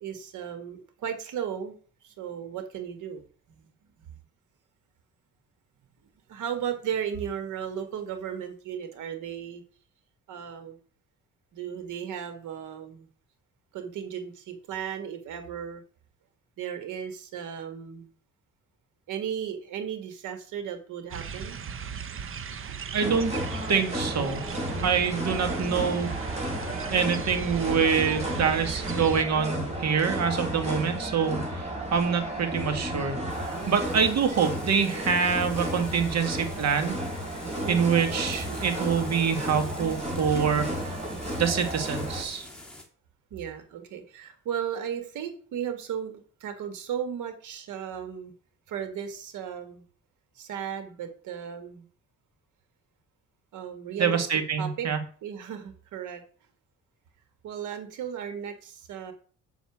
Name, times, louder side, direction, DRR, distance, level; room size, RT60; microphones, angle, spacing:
voice 1, 0.0-1.8 2.0-3.2 3.5-3.7 4.0-4.2 6.3-9.6 10.3-10.8 11.5-13.1 13.7-15.8 16.6-18.1 19.1-21.6 22.6-22.9 37.6-37.9 43.3-48.3 48.7-49.8 50.4-51.9 53.5-54.3 54.6-54.9 55.2-56.2 57.4-59.1, right 8 dB, 80° right, 8 dB, 2.0 m, -35 dB
sound 1, 21.1-29.3, right 7 dB, 45° right, 1.0 m, -38 dB
voice 2, 22.9-23.3 23.7-24.4 24.8-26.1 26.9-33.2 33.7-36.9 37.7-41.0 41.4-42.5 54.0-55.0, right 6 dB, 60° right, 7 dB, 2.0 m, -25 dB
sound 2, 23.0-42.2, equal, 20° right, 3.8 m, -33 dB
sound 3, 33.3-42.8, left 1 dB, 5° left, 2.7 m, -46 dB
7.0 x 6.0 x 7.4 m, 0.43 s
cardioid pair, 90°, 30 cm